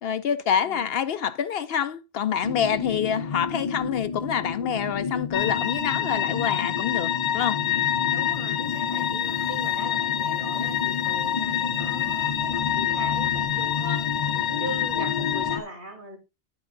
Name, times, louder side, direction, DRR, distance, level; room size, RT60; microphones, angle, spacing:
voice 1, 0.0-7.6 14.4-14.6, left 8 dB, 70° left, 0.8 m, -27 dB
sound 1, 2.4-15.6, left 5 dB, 40° left, 0.7 m, -32 dB
sound 2, 5.3-15.6, left 10 dB, 85° left, 1.1 m, -27 dB
voice 2, 8.1-16.2, right 1 dB, 50° right, 2.5 m, -40 dB
9.9 x 5.8 x 3.8 m
omnidirectional pair, 1.1 m